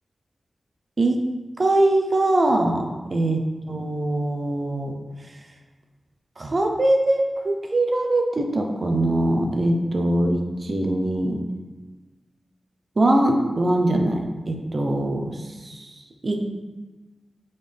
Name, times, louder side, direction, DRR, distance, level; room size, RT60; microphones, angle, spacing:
voice 1, 1.6-3.4 3.7-5.0 6.4-11.4 13.0-16.5, right 1 dB, 40° right, 3 dB, 0.8 m, -22 dB
7.2 x 4.0 x 3.5 m, 1.2 s
wide cardioid pair, 125°, 0 cm